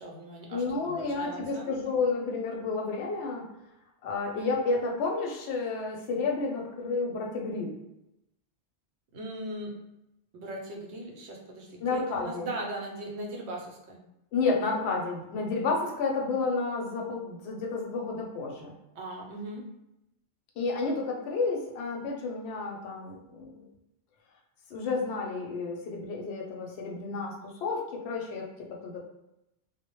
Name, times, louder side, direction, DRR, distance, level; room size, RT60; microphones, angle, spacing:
voice 1, 0.0-1.7 9.1-9.8 10.3-14.0 18.9-19.7, right 1 dB, 70° right, 1 dB, 0.8 m, -39 dB
voice 2, 0.5-3.4 4.0-7.8 11.8-12.5 14.3-18.7 20.6-23.7 24.7-28.5 28.8-29.0, left 4 dB, 70° left, 0 dB, 0.8 m, -31 dB
2.1 x 2.0 x 2.9 m, 0.89 s
omnidirectional pair, 1.2 m